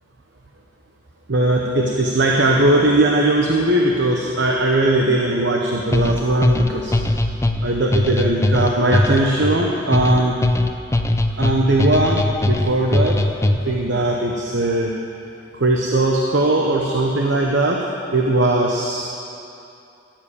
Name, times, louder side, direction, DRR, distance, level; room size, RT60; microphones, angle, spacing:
voice 1, 1.3-6.9 7.6-10.4 11.4-13.2 13.5-14.9 15.5-17.8 18.1-19.1, right 1 dB, 65° right, -1 dB, 1.0 m, -19 dB
sound 1, 5.9-13.8, left 1 dB, 15° left, 0.4 m, -20 dB
14.5 x 7.5 x 8.7 m, 2.6 s
head